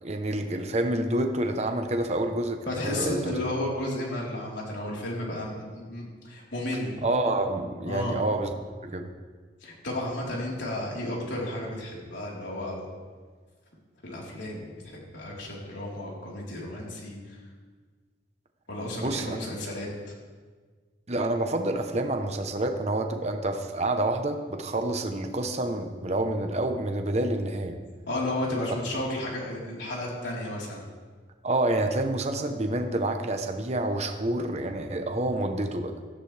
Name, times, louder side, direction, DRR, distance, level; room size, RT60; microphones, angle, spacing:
voice 1, 0.0-3.4 7.0-8.5 8.8-9.1 19.0-19.4 21.1-27.8 31.4-35.9, right 1 dB, 35° right, 5 dB, 1.0 m, -28 dB
voice 2, 2.7-7.0 7.9-8.2 9.6-12.8 14.0-17.2 18.7-19.9 28.1-30.9, left 1 dB, 75° left, -4 dB, 4.1 m, -33 dB
18.0 x 14.0 x 3.4 m, 1.5 s
head